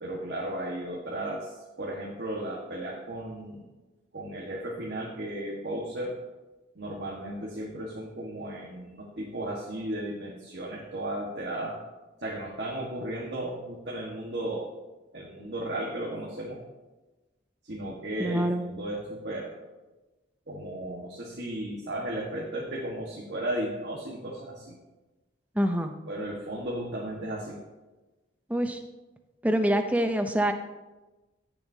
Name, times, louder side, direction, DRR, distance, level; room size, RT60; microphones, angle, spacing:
voice 1, 0.0-3.6 4.1-6.2 6.7-11.8 12.2-14.7 15.1-16.6 17.6-19.5 20.5-24.7 26.1-27.6, right 1 dB, 65° right, -4 dB, 1.4 m, -35 dB
voice 2, 18.2-18.6 25.6-25.9 28.5-28.8 29.4-30.5, right 1 dB, 10° right, 6 dB, 0.5 m, -25 dB
16.0 x 6.9 x 2.7 m, 1.1 s
head